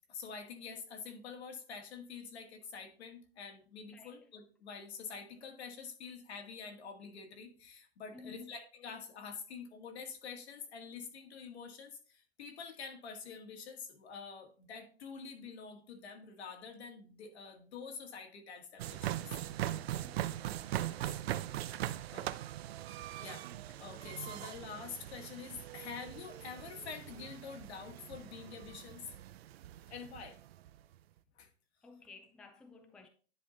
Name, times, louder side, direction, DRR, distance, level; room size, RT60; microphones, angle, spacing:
voice 1, 0.1-19.4 19.9-20.1 20.8-21.0 21.5-22.3 22.9-29.1 29.9-30.4 31.4-31.5, left 5 dB, 80° left, 1.8 m, -47 dB
voice 2, 3.9-4.2 8.1-8.5 19.8-20.5 31.8-33.1, left 4 dB, 5° left, 0.4 m, -54 dB
sound 1, 18.8-30.8, right 13 dB, 70° right, 0.6 m, -41 dB
9.9 x 3.6 x 3.9 m
hypercardioid pair, 135°, 32 cm